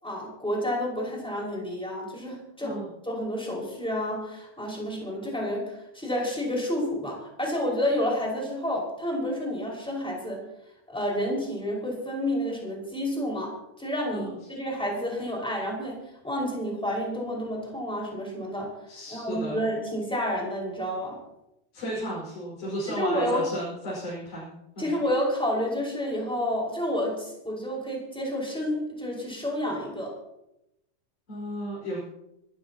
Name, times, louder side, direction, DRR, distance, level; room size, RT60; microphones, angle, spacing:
voice 1, 0.0-2.8 3.0-10.4 10.9-13.5 13.8-18.7 19.1-21.2 22.9-23.4 24.8-30.1, equal, ahead, -3 dB, 5.2 m, -30 dB
voice 2, 18.9-19.6 21.7-24.9 31.3-32.0, equal, 75° left, -7 dB, 6.9 m, -34 dB
25.5 x 14.0 x 3.0 m, 0.87 s
omnidirectional pair, 3.6 m